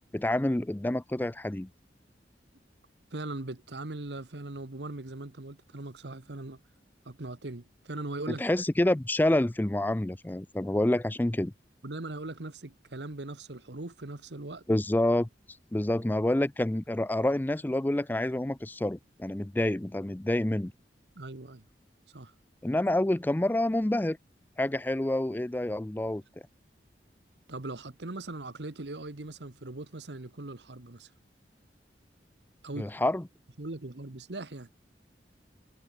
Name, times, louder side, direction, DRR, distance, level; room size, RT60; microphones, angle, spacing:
voice 1, 0.1-1.7 8.4-11.5 14.7-15.3 15.7-20.7 22.6-24.2 24.6-26.2 32.8-33.2, left 1 dB, 10° left, 0.4 m, -28 dB
voice 2, 3.1-6.6 7.0-8.4 11.8-14.6 21.1-21.6 22.1-22.3 27.5-31.1 32.6-32.9 33.6-34.7, right 2 dB, 80° right, 1.5 m, -40 dB
head